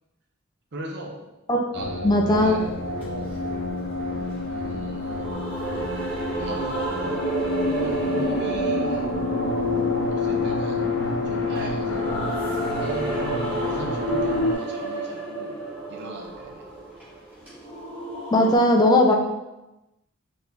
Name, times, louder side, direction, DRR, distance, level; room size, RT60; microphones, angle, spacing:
voice 1, 0.7-1.2 1.7-3.4 4.4-5.3 6.4-7.3 7.6-9.1 10.1-10.9 11.2-12.4 12.8-15.6 15.9-16.7, right 1 dB, 55° right, 1 dB, 0.7 m, -39 dB
sound 1, 1.7-14.5, left 3 dB, 55° left, 0.7 m, -28 dB
voice 2, 2.0-2.6 18.3-19.1, left 1 dB, 20° left, 2 dB, 0.5 m, -18 dB
sound 2, 2.3-18.6, right 3 dB, 10° right, 1.5 m, -32 dB
4.8 x 2.6 x 3.3 m, 0.99 s
head